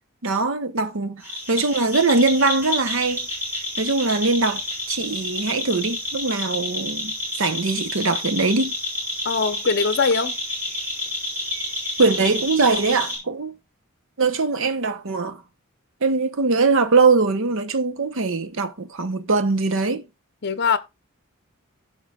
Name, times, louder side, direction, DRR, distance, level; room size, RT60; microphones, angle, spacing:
voice 1, 0.2-3.3 3.8-4.6 4.9-8.7 12.0-13.5 14.2-15.4 16.0-20.1, right 3 dB, 65° right, 0.9 m, -21 dB
sound 1, 1.2-13.2, left 1 dB, 10° right, 5.9 m, -29 dB
voice 2, 9.2-10.4 20.4-20.8, left 5 dB, 50° left, 0.8 m, -21 dB
16.5 x 5.8 x 2.4 m
head